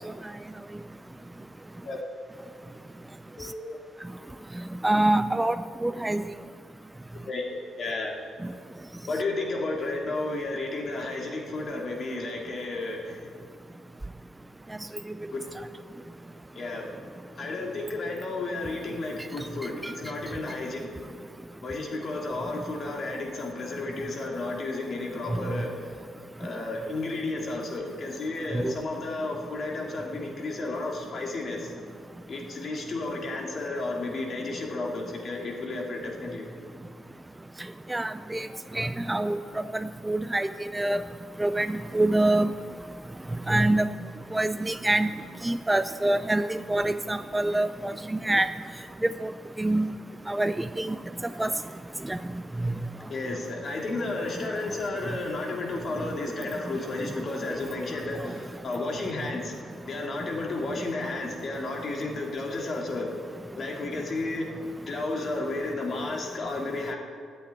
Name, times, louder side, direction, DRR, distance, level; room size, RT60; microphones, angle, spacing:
voice 1, 3.4-3.8 7.2-8.1 9.1-13.2 15.3-15.4 16.5-16.9 17.4-20.9 21.6-25.7 26.4-31.7 32.3-36.5 53.1-59.6 59.8-63.1 63.6-64.5 64.9-67.0, left 2 dB, 50° left, 0 dB, 2.7 m, -32 dB
voice 2, 4.8-5.6 5.8-6.2 19.8-19.9 28.6-28.7 37.9-38.5 38.7-39.4 40.1-41.0 41.4-42.5 43.5-43.9 44.3-45.1 45.4-48.5 49.0-49.3 49.6-49.9 50.3-51.0 51.4-51.5 52.1-52.2, right 1 dB, 10° right, 11 dB, 0.4 m, -25 dB
11.5 x 8.6 x 9.0 m, 2.2 s
cardioid pair, 90°, 0 cm